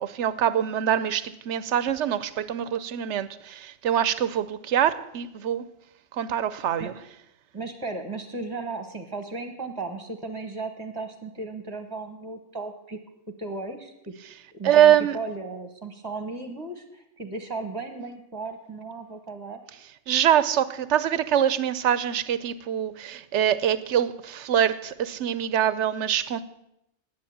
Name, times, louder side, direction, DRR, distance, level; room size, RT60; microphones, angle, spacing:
voice 1, 0.0-5.6 6.1-6.9 14.6-15.2 20.1-26.4, right 10 dB, 80° right, 1.0 m, -24 dB
voice 2, 7.5-13.0 13.4-13.9 14.5-19.6, right 3 dB, 20° right, 1.1 m, -35 dB
10.5 x 8.6 x 8.5 m
omnidirectional pair, 1.2 m